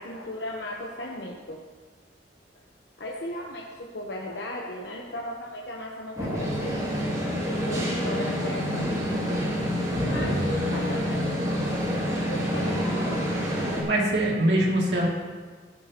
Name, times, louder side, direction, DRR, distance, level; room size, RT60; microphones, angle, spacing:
voice 1, 0.0-1.6 3.0-6.7 7.4-9.3 10.0-11.2 12.3-12.8, left 1 dB, 70° left, -2 dB, 1.1 m, -36 dB
sound 1, 6.2-13.8, equal, 20° right, 2.7 m, -27 dB
voice 2, 10.1-10.5 13.8-15.1, right 1 dB, 70° right, -3 dB, 2.9 m, -24 dB
13.5 x 12.5 x 3.1 m, 1.4 s
head